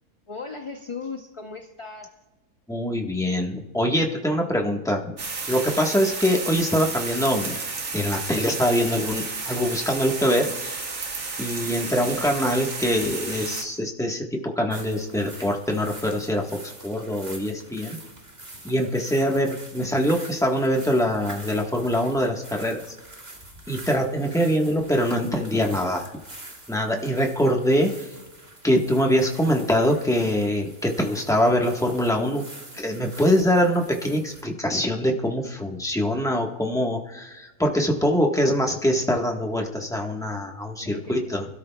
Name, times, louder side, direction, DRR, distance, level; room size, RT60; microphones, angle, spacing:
voice 1, 0.3-2.1 40.8-41.3, left 4 dB, 30° left, 4 dB, 0.7 m, -37 dB
voice 2, 2.7-5.1 5.5-7.6 7.9-10.7 11.4-18.0 18.6-22.9 23.7-26.1 26.7-28.1 28.6-32.5 32.7-41.5, equal, ahead, 1 dB, 1.2 m, -24 dB
sound 1, 5.2-13.6, right 4 dB, 50° right, 1.9 m, -32 dB
sound 2, 14.7-34.4, right 1 dB, 30° right, 2.1 m, -45 dB
26.0 x 13.0 x 2.3 m, 1.1 s
omnidirectional pair, 1.6 m